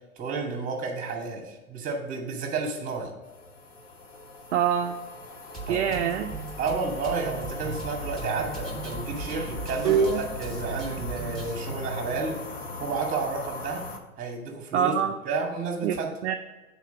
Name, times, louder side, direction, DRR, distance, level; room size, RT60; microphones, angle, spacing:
voice 1, 0.2-3.1 5.7-6.0 6.6-12.4 12.8-13.8 14.2-14.9 15.2-16.1, right 4 dB, 20° right, 2 dB, 1.9 m, -31 dB
sound 1, 3.2-14.0, left 2 dB, 20° left, 0.7 m, -39 dB
voice 2, 4.5-5.0 5.7-6.3 9.8-10.2 14.7-15.2 15.8-16.4, right 8 dB, 55° right, 5 dB, 0.5 m, -24 dB
Drum kit, 5.5-11.5, right 3 dB, ahead, 1.4 m, -38 dB
8.2 x 4.4 x 4.9 m, 1.2 s
hypercardioid pair, 115°, 44 cm